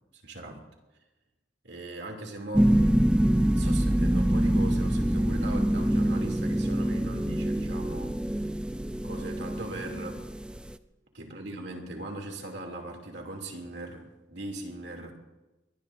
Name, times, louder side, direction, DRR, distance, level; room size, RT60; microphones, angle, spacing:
voice 1, 0.2-0.6 1.6-2.7 3.6-8.5 9.0-10.3 11.1-15.1, right 2 dB, 65° right, 2 dB, 2.7 m, -39 dB
sound 1, 2.5-10.7, right 1 dB, 5° right, 0.4 m, -25 dB
22.5 x 19.0 x 2.6 m, 1.1 s
head